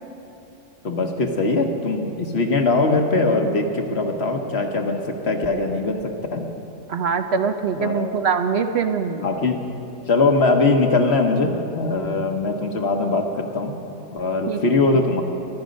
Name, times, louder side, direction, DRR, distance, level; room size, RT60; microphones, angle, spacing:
voice 1, 0.8-6.5 7.7-8.1 9.2-9.7 10.1-13.7 14.1-15.2, left 3 dB, 55° left, 4 dB, 1.4 m, -21 dB
voice 2, 6.9-9.3 14.5-14.6, right 6 dB, 60° right, 7 dB, 0.9 m, -23 dB
21.5 x 11.5 x 5.3 m, 2.9 s
omnidirectional pair, 1.3 m